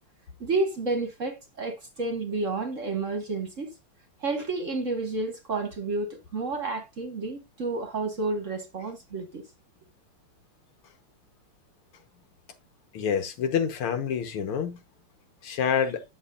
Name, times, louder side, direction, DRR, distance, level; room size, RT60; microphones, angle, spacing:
voice 1, 0.4-3.7 4.2-9.4, right 3 dB, 45° right, 1.2 m, -30 dB
voice 2, 12.9-14.8 15.4-16.0, left 7 dB, 85° left, 2.0 m, -27 dB
9.8 x 6.9 x 2.5 m
omnidirectional pair, 2.3 m